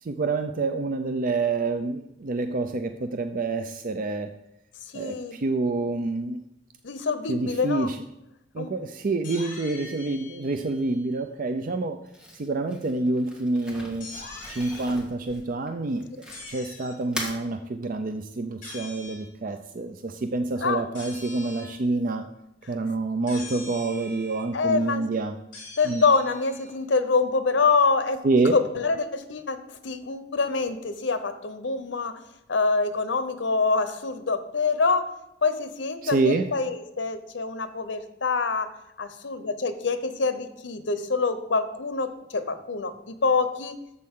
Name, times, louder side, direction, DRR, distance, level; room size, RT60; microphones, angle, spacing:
voice 1, 0.0-4.3 4.9-6.4 7.3-8.0 8.5-12.0 12.3-14.1 14.5-16.1 16.5-22.2 22.7-25.3 25.8-26.0 28.2-28.5 36.0-36.5, right 3 dB, 50° right, 7 dB, 0.5 m, -27 dB
voice 2, 4.9-5.4 6.8-7.9 8.6-8.7 20.6-20.8 24.5-25.0 25.8-28.2 28.5-29.6 29.8-32.2 32.5-35.1 35.4-38.7 39.0-43.8, left 4 dB, 85° left, 10 dB, 0.9 m, -25 dB
sound 1, 9.2-11.2 14.0-14.8 16.3-17.0 18.6-19.2 20.9-21.8 23.3-24.4 25.5-26.7, left 3 dB, 45° left, 3.9 m, -43 dB
Crumpling crinkling, 12.1-16.7 17.0-17.4, equal, 5° right, 1.6 m, -39 dB
12.0 x 7.4 x 3.7 m, 0.88 s
head